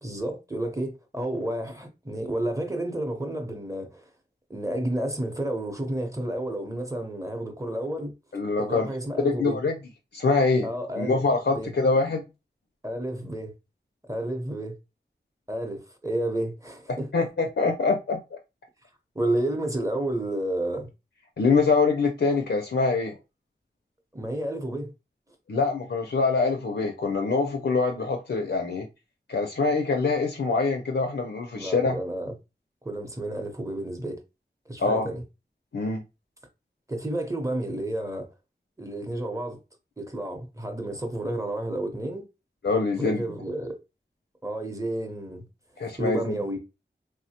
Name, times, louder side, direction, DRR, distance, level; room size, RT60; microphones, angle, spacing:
voice 1, 0.0-4.1 4.5-8.1 8.6-9.6 10.6-11.2 11.5-11.7 12.8-13.5 14.0-14.8 15.5-17.3 19.1-20.9 24.1-24.9 31.5-32.3 32.8-34.2 34.7-35.2 36.9-38.3 38.8-39.6 40.0-42.2 43.0-43.8 44.4-45.4 46.0-46.6, right 1 dB, 15° right, 0.7 m, -31 dB
voice 2, 8.3-8.9 9.2-9.8 10.1-10.7 11.0-12.3 17.1-18.4 21.4-23.2 25.5-28.9 29.3-32.0 34.8-35.1 35.7-36.0 42.6-43.2 45.8-46.4, left 4 dB, 70° left, 0.5 m, -24 dB
3.1 x 2.0 x 2.8 m
wide cardioid pair, 55°, 19 cm